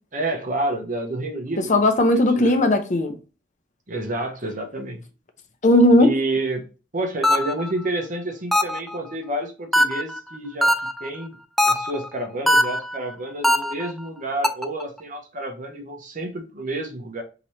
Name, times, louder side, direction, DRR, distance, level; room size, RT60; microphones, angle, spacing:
voice 1, 0.1-1.7 2.4-2.5 3.9-5.0 6.0-6.6 6.9-11.4 11.6-17.2, right 1 dB, 45° right, 0.9 m, -29 dB
voice 2, 1.6-3.2 5.6-6.1, left 1 dB, 40° left, 0.7 m, -17 dB
sound 1, 7.2-7.7 8.5-9.0 9.7-10.2 10.6-11.1 11.6-12.1 12.5-13.0 13.4-13.9 14.4-14.8, left 1 dB, ahead, 0.3 m, -20 dB
4.3 x 2.9 x 3.2 m
head